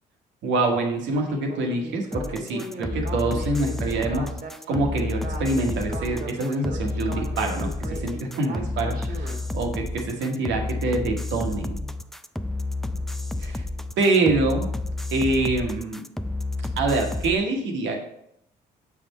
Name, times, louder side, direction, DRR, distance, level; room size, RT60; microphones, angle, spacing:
voice 1, 0.4-4.3 4.7-11.9 13.4-13.6 14.0-14.7 15.1-16.0 16.8-18.0, right 2 dB, 70° right, 3 dB, 1.2 m, -25 dB
Speech synthesizer, 1.1-9.4, right 2 dB, 45° right, 1.3 m, -38 dB
sound 1, 2.1-17.3, left 2 dB, ahead, 0.3 m, -30 dB
6.6 x 3.6 x 4.1 m, 0.74 s
hypercardioid pair, 55°, 20 cm